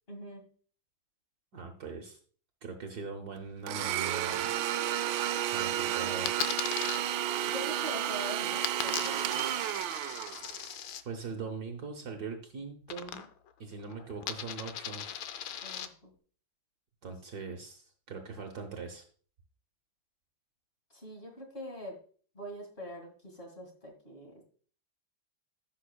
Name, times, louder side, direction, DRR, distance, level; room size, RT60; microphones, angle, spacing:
voice 1, 0.1-0.4 7.4-9.5 15.6-16.1 17.0-17.1 20.9-22.0 22.3-24.4, equal, 30° left, 2 dB, 2.2 m, -43 dB
voice 2, 1.5-2.2 2.6-4.6 5.5-6.3 11.0-13.3 13.6-15.1 17.0-19.0, right 4 dB, 55° right, 4 dB, 1.4 m, -41 dB
Domestic sounds home sounds, 3.7-10.7, right 11 dB, 80° right, 1.3 m, -32 dB
Coin (dropping), 6.3-7.0 8.6-11.0 12.9-13.5 13.8-15.9, left 9 dB, 75° left, 1.4 m, -39 dB
15.0 x 6.4 x 2.3 m, 0.43 s
omnidirectional pair, 2.2 m